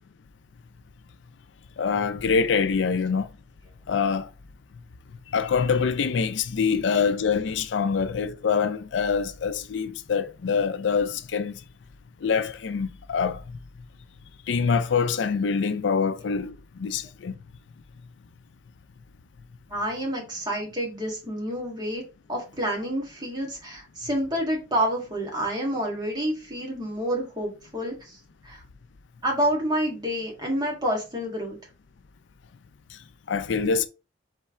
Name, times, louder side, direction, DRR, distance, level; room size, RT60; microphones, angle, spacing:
voice 1, 1.8-3.3 3.9-4.3 5.3-11.6 12.2-13.6 14.5-17.3 32.9-33.0 33.3-33.9, left 5 dB, 85° left, 0.4 m, -25 dB
voice 2, 19.7-22.0 22.3-28.2 28.4-28.6 29.2-31.6, equal, 25° right, 1.7 m, -28 dB
4.3 x 3.3 x 3.5 m
head